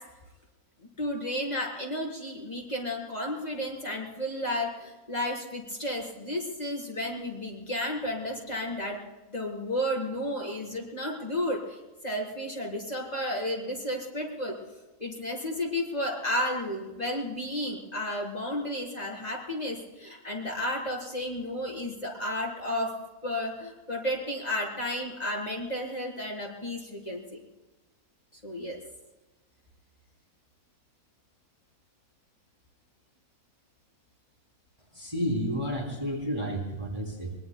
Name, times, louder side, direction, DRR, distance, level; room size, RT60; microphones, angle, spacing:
voice 1, 1.0-9.0 9.3-11.8 12.0-14.6 15.0-22.9 23.2-27.2 28.4-28.8, left 1 dB, 25° left, -2 dB, 3.8 m, -32 dB
voice 2, 35.0-37.4, equal, 20° right, -2 dB, 3.0 m, -31 dB
24.0 x 22.5 x 2.2 m, 1.1 s
omnidirectional pair, 1.6 m